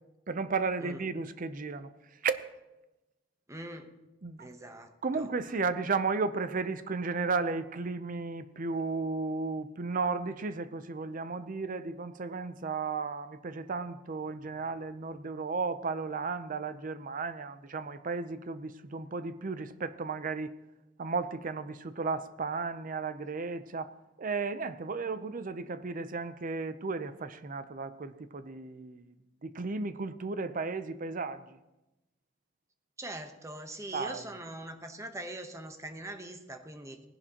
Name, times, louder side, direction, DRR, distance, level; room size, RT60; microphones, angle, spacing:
voice 1, 0.3-1.9 2.2-2.4 4.2-4.5 5.0-20.5 21.0-29.1 29.4-31.6 33.9-34.2, right 4 dB, 45° right, 0.6 m, -34 dB
voice 2, 3.5-3.9 4.4-5.3 33.0-37.0, right 1 dB, 15° right, 0.9 m, -42 dB
19.0 x 11.0 x 2.9 m
head